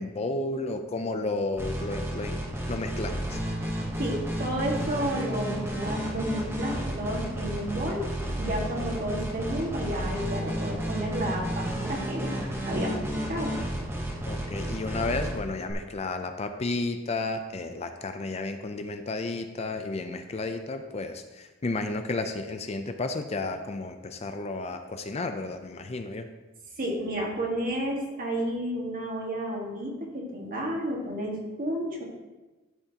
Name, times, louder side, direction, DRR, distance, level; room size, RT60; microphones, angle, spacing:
voice 1, 0.0-2.4 2.7-3.4 14.2-26.3, left 2 dB, 30° left, 7 dB, 0.5 m, -32 dB
sound 1, 1.6-15.7, right 1 dB, 10° right, 1.0 m, -32 dB
voice 2, 4.0-8.1 8.4-13.6 26.8-32.0, right 1 dB, 45° right, -1 dB, 1.7 m, -31 dB
12.5 x 5.6 x 2.9 m, 1.2 s
head